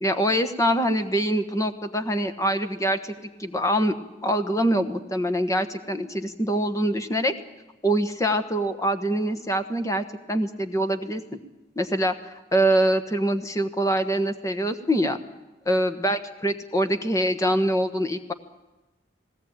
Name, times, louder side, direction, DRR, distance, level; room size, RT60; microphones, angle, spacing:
voice 1, 0.0-3.1 3.4-3.9 4.2-7.3 7.8-11.2 11.7-12.2 12.5-15.2 15.6-18.3, right 1 dB, 20° left, 9 dB, 1.3 m, -24 dB
20.0 x 17.0 x 8.8 m, 1.1 s
head